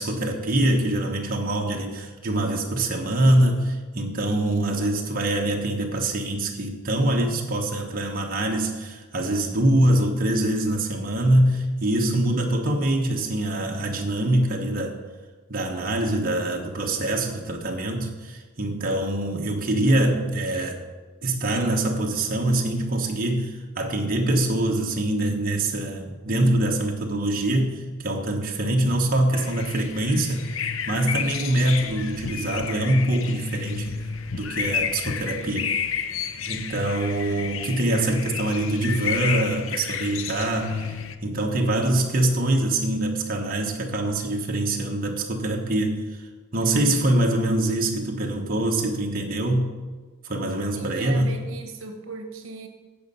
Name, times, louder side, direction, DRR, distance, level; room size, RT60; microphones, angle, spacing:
voice 1, 0.0-15.0 15.5-20.8 21.2-34.0 34.3-35.7 36.5-46.0 46.5-49.7 50.2-51.3, right 1 dB, 40° right, 0 dB, 1.1 m, -24 dB
sound 1, 29.3-41.2, left 7 dB, 65° left, 0.7 m, -31 dB
voice 2, 50.7-52.7, right 3 dB, 70° right, 5 dB, 1.2 m, -37 dB
15.5 x 5.4 x 5.6 m, 1.4 s
head